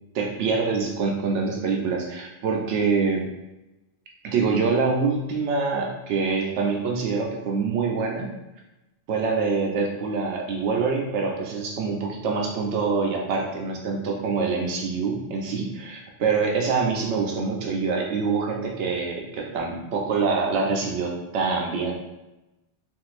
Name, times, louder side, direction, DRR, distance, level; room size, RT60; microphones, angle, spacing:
voice 1, 0.1-3.2 4.2-8.3 9.1-22.0, right 4 dB, 85° right, 0 dB, 0.9 m, -25 dB
3.5 x 2.6 x 2.4 m, 0.96 s
omnidirectional pair, 1.1 m